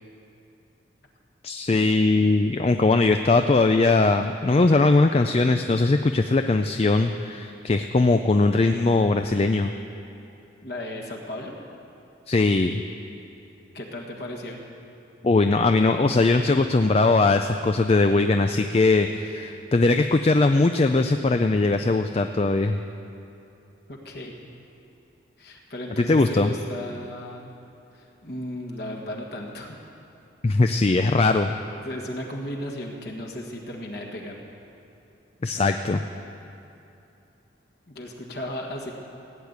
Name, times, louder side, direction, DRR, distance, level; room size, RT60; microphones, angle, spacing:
voice 1, 1.4-9.7 12.3-12.8 15.2-22.8 26.1-26.5 30.4-31.5 35.4-36.0, left 3 dB, 30° left, 7 dB, 0.4 m, -20 dB
voice 2, 10.6-11.5 13.7-14.6 23.9-24.3 25.4-27.5 27.9-29.8 31.8-34.3 37.9-38.9, left 1 dB, 55° left, 0 dB, 1.6 m, -35 dB
16.5 x 8.9 x 8.1 m, 2.9 s
head